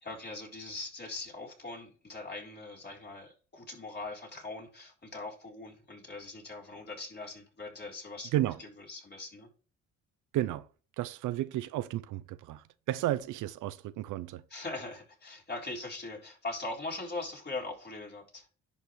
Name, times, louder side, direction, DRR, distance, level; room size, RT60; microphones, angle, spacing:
voice 1, 0.0-8.3 8.6-9.5 14.5-18.5, left 2 dB, 35° left, 4.0 m, -41 dB
voice 2, 10.3-10.7 11.0-14.4, right 14 dB, 85° right, 0.6 m, -32 dB
10.5 x 5.5 x 3.2 m
cardioid pair, 90°, 30 cm